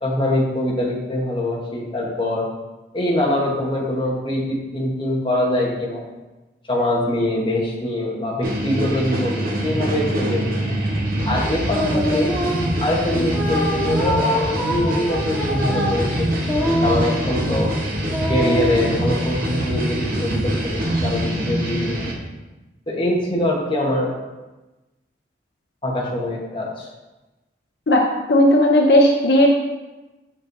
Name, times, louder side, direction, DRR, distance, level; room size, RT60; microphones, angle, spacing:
voice 1, 0.0-2.5 2.9-6.0 6.7-10.6 11.2-12.3 12.8-16.4 16.8-17.7 18.3-22.1 22.9-24.2 25.8-26.9, left 1 dB, 25° left, -3 dB, 1.2 m, -23 dB
sound 1, 8.4-22.1, equal, 50° right, 1.1 m, -24 dB
sound 2, 11.7-12.8 13.3-17.6 18.1-18.9, equal, 5° left, 1.5 m, -24 dB
voice 2, 27.9-29.5, left 1 dB, 65° left, 0 dB, 0.7 m, -15 dB
7.3 x 6.4 x 2.7 m, 1.1 s
head